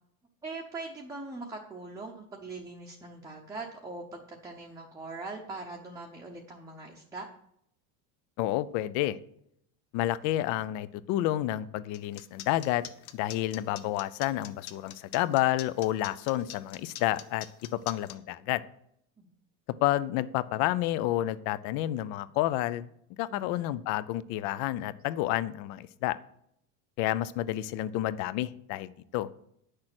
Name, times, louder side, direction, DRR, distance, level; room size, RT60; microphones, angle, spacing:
voice 1, 0.4-7.3 19.2-19.3 23.3-23.8, right 3 dB, 10° right, 0 dB, 0.8 m, -42 dB
voice 2, 8.4-9.2 9.9-12.9 13.1-18.6 19.8-22.9 23.2-26.2 27.0-29.3, left 14 dB, 45° left, 18 dB, 0.5 m, -30 dB
sound 1, 11.9-18.1, left 13 dB, 90° left, 1.1 m, -43 dB
9.8 x 6.6 x 6.0 m, 0.72 s
cardioid pair, 165°, 42 cm